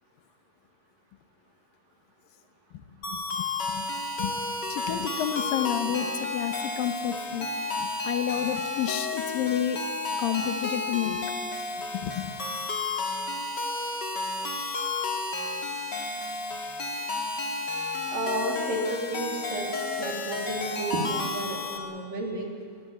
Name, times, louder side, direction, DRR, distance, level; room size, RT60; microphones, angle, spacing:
sound 1, 3.0-21.8, left 3 dB, 35° left, 2.0 m, -32 dB
voice 1, 4.2-7.5 7.8-9.8 10.2-11.3 11.9-12.3, left 10 dB, 65° left, 9 dB, 2.5 m, -30 dB
voice 2, 18.1-22.5, right 1 dB, 55° right, 1 dB, 4.2 m, -32 dB
23.5 x 21.0 x 8.5 m, 2.1 s
omnidirectional pair, 5.1 m